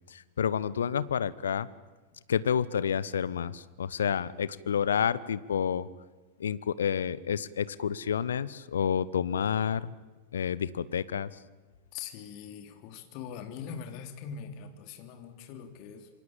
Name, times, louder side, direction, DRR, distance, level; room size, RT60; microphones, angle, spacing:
voice 1, 0.1-1.7 2.3-5.9 6.4-9.9 10.3-11.3, left 8 dB, 65° left, 18 dB, 0.9 m, -29 dB
voice 2, 11.9-16.1, left 7 dB, 45° left, 6 dB, 3.2 m, -42 dB
27.0 x 23.0 x 8.8 m, 1.3 s
figure-of-eight pair, 90°, 0 cm